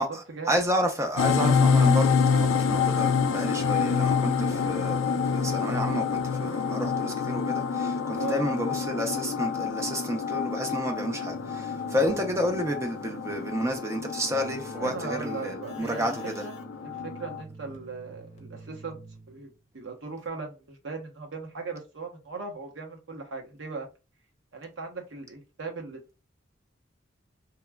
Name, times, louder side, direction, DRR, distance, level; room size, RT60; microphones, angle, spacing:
voice 1, 0.0-16.5, equal, 15° right, 0.5 m, -30 dB
sound 1, 1.2-17.4, left 6 dB, 80° left, 0.3 m, -27 dB
Keyboard (musical), 11.2-19.6, right 1 dB, 35° left, 0.6 m, -48 dB
voice 2, 14.7-16.1 16.4-16.5 16.8-19.0 19.3-23.9 24.5-26.2, right 4 dB, 75° right, 0.8 m, -38 dB
2.9 x 2.2 x 2.2 m
head